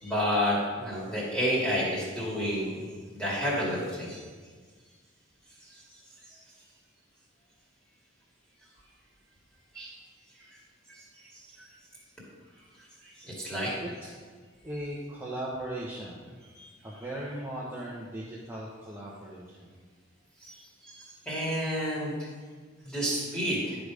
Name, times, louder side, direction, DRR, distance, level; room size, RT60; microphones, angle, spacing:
voice 1, 0.0-2.9 3.1-4.2 5.6-5.7 6.3-6.4 9.7-9.9 11.3-11.7 13.0-13.7 16.5-16.7 20.4-22.3 22.8-23.8, equal, 5° left, -7 dB, 2.2 m, -30 dB
voice 2, 14.6-16.3 16.8-19.7, right 1 dB, 10° right, -6 dB, 0.9 m, -38 dB
10.5 x 5.1 x 4.9 m, 1.5 s
head